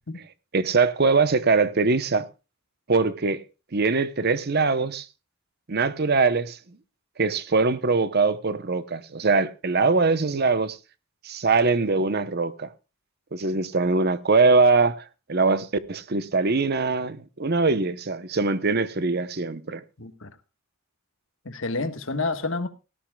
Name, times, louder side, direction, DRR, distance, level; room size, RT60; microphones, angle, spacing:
voice 1, 0.5-2.3 2.9-3.4 3.7-5.1 5.7-6.8 7.2-10.8 11.2-12.7 13.3-19.8, right 4 dB, 50° right, 0.8 m, -22 dB
voice 2, 20.0-20.3 21.4-22.7, left 3 dB, 65° left, 1.4 m, -29 dB
18.0 x 13.5 x 2.3 m
head